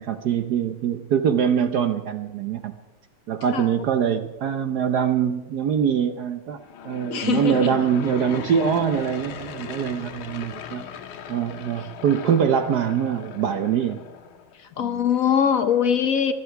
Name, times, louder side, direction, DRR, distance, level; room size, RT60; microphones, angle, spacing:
voice 1, 0.0-2.7 3.3-6.6 6.8-10.9 11.3-14.0 14.8-15.1, right 8 dB, 65° right, 10 dB, 1.1 m, -23 dB
Aircraft / Engine, 6.5-14.5, left 8 dB, 80° left, 1.9 m, -38 dB
voice 2, 7.1-7.8 14.6-16.3, left 8 dB, 60° left, 9 dB, 0.9 m, -22 dB
19.0 x 11.5 x 5.8 m, 1.1 s
omnidirectional pair, 2.3 m